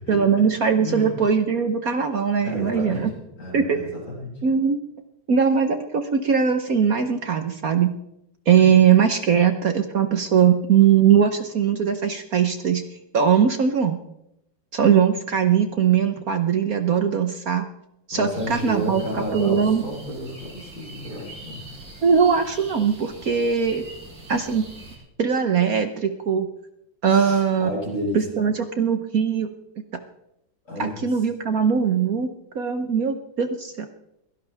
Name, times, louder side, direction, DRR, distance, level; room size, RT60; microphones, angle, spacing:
voice 1, 0.1-3.1 3.5-3.8 4.4-4.8 5.3-7.9 8.5-12.8 13.1-14.0 14.7-17.7 18.1-19.8 22.0-23.8 24.3-24.7 25.2-26.5 27.0-27.7 28.1-29.5 30.8-33.9, right 7 dB, 55° right, 7 dB, 1.3 m, -20 dB
voice 2, 0.8-1.1 2.4-4.3 8.5-8.8 9.3-9.4 18.1-21.6 27.0-28.2 30.7-31.2, left 1 dB, 55° left, -4 dB, 7.9 m, -32 dB
sound 1, 18.3-25.0, right 2 dB, 70° right, 7.3 m, -42 dB
22.5 x 17.0 x 3.5 m, 0.82 s
omnidirectional pair, 2.1 m